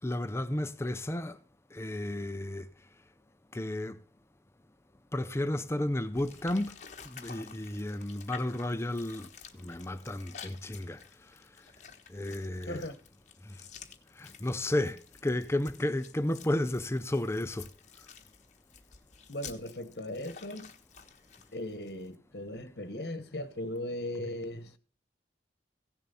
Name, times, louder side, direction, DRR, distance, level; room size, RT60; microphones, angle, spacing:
voice 1, 0.0-1.4 1.7-2.7 3.5-4.0 5.1-6.8 7.1-11.0 12.1-12.9 13.5-13.6 14.2-17.7, left 1 dB, 15° left, 0.6 m, -32 dB
sound 1, 6.2-22.2, left 6 dB, 45° left, 1.4 m, -51 dB
voice 2, 19.3-20.7 21.5-24.7, left 1 dB, 65° left, 1.3 m, -38 dB
16.5 x 7.2 x 4.1 m
head